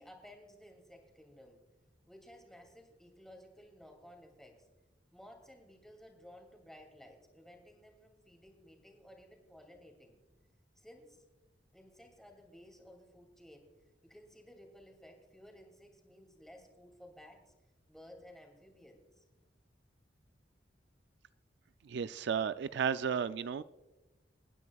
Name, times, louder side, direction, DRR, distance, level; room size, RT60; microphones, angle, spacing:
voice 1, 0.0-1.6 2.1-4.7 5.1-10.1 10.8-11.2 11.7-13.7 14.0-17.5 17.9-19.2, equal, 5° left, 2 dB, 2.5 m, -56 dB
voice 2, 21.9-23.6, right 7 dB, 70° right, 13 dB, 0.4 m, -33 dB
28.5 x 9.6 x 2.3 m, 1.1 s
head